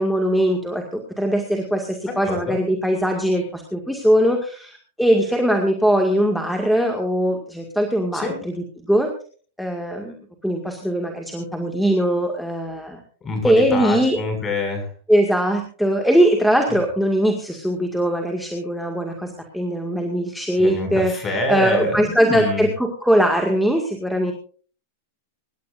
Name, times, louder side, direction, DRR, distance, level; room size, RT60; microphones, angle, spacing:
voice 1, 0.0-8.5 8.9-9.1 9.6-10.2 10.4-13.0 13.4-14.2 15.1-24.3, equal, ahead, 2 dB, 2.0 m, -21 dB
voice 2, 2.3-2.6 8.1-8.4 13.2-14.9 20.6-22.7, left 1 dB, 20° left, 5 dB, 6.2 m, -25 dB
25.0 x 11.0 x 2.6 m, 0.42 s
hypercardioid pair, 130°, 0 cm